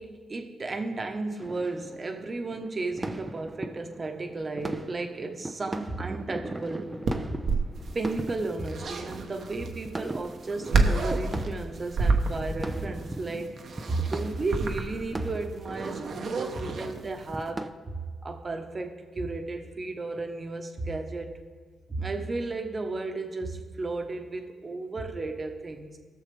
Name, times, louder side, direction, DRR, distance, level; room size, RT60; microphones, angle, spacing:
voice 1, 0.0-6.9 7.3-7.4 7.9-13.6 13.9-21.4 21.9-26.0, right 3 dB, 35° right, 5 dB, 1.1 m, -34 dB
sound 1, 1.4-17.7, right 2 dB, 20° right, 0.6 m, -40 dB
sound 2, 7.0-17.4, right 3 dB, 65° right, 1.0 m, -30 dB
17.5 x 6.5 x 3.4 m, 1.5 s
supercardioid pair, 65°, 0 cm